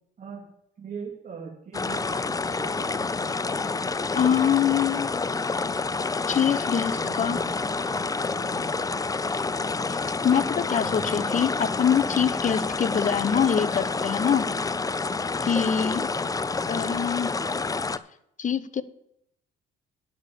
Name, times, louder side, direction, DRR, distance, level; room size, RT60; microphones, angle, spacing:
voice 1, 0.8-3.1 7.0-7.5 8.0-9.0 10.8-11.4 12.1-12.3, right 5 dB, 40° right, -2 dB, 2.8 m, -41 dB
sound 1, 1.7-18.0, left 4 dB, 20° left, 0.5 m, -28 dB
voice 2, 4.1-5.1 6.3-7.4 9.9-10.0 10.2-14.5 15.4-16.1 16.7-17.3 18.4-18.8, left 8 dB, 40° left, 15 dB, 0.8 m, -24 dB
10.5 x 6.7 x 6.9 m, 0.75 s
cardioid pair, 90°, 20 cm